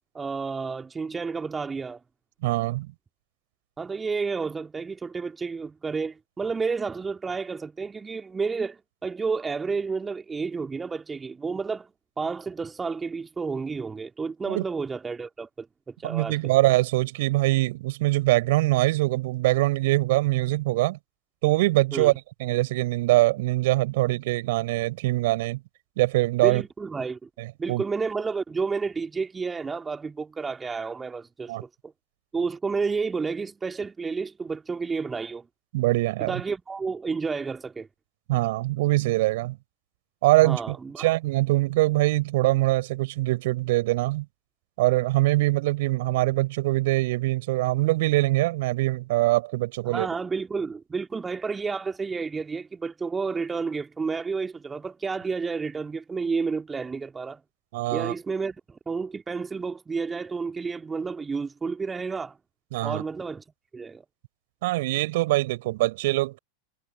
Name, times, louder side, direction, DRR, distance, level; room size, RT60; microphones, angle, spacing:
voice 1, 0.1-2.0 3.8-11.9 12.2-16.4 21.9-22.1 26.4-27.3 27.6-31.9 32.3-35.4 36.2-37.9 40.4-41.1 49.8-57.4 57.9-62.4 62.8-63.4 63.7-64.0, right 4 dB, 15° right, 2.8 m, -31 dB
voice 2, 2.4-2.9 14.5-14.6 16.0-21.0 21.4-22.1 22.4-25.6 26.0-26.6 27.4-27.8 31.5-31.6 35.7-36.4 38.3-39.6 40.2-44.2 44.8-50.1 57.7-58.1 62.7-63.0 64.6-66.4, right 19 dB, 50° right, 5.0 m, -23 dB
figure-of-eight pair, 90°, 0 cm